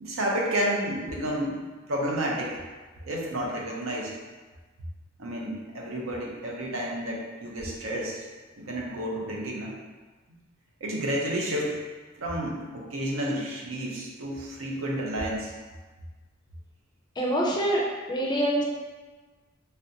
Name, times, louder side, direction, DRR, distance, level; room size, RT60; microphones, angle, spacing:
voice 1, 0.0-1.6 1.9-2.6 3.1-4.1 5.2-8.2 8.6-9.8 10.8-11.8 12.2-15.5, right 1 dB, 80° right, -2 dB, 0.6 m, -30 dB
voice 2, 17.2-18.6, right 1 dB, 20° left, -3 dB, 0.4 m, -25 dB
3.3 x 2.5 x 2.7 m, 1.3 s
head